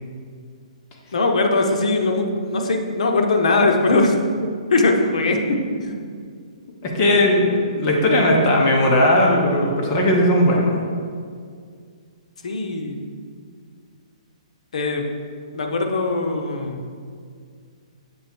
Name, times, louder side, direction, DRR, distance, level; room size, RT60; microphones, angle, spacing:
voice 1, 1.1-4.2 4.7-5.4 5.8-6.1 12.4-13.0 14.7-15.1 15.5-16.8, left 3 dB, 70° left, 3 dB, 0.9 m, -20 dB
voice 2, 6.8-10.8, left 1 dB, 25° left, -1 dB, 0.9 m, -17 dB
7.3 x 3.4 x 4.4 m, 2.1 s
hypercardioid pair, 160°, 4 cm